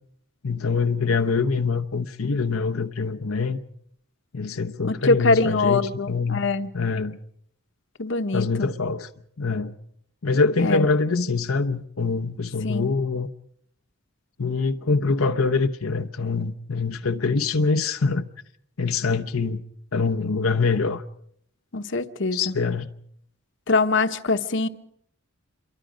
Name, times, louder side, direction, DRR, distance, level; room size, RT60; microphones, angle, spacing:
voice 1, 0.4-3.6 4.3-6.4 6.7-7.2 8.3-9.1 9.4-9.7 10.2-13.3 14.4-18.3 18.8-19.6 19.9-21.0 22.3-22.9, left 4 dB, 85° left, 0.9 m, -24 dB
voice 2, 4.8-6.7 8.0-8.7 10.6-10.9 12.6-12.9 21.7-22.5 23.7-24.7, left 3 dB, 60° left, 1.1 m, -23 dB
27.0 x 23.0 x 5.1 m
head